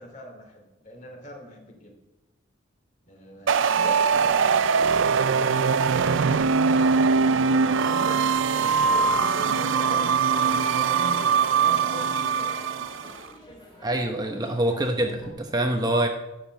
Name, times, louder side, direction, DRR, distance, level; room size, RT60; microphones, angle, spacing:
voice 1, 0.0-1.9 3.0-4.4 6.3-12.5, equal, 40° left, 2 dB, 2.8 m, -42 dB
sound 1, 3.5-13.1, right 5 dB, 70° right, 0.5 m, -22 dB
sound 2, 3.9-15.3, equal, 25° left, 3.0 m, -45 dB
voice 2, 13.8-16.1, right 1 dB, 20° right, 3 dB, 1.0 m, -25 dB
11.5 x 7.7 x 7.7 m, 0.99 s
head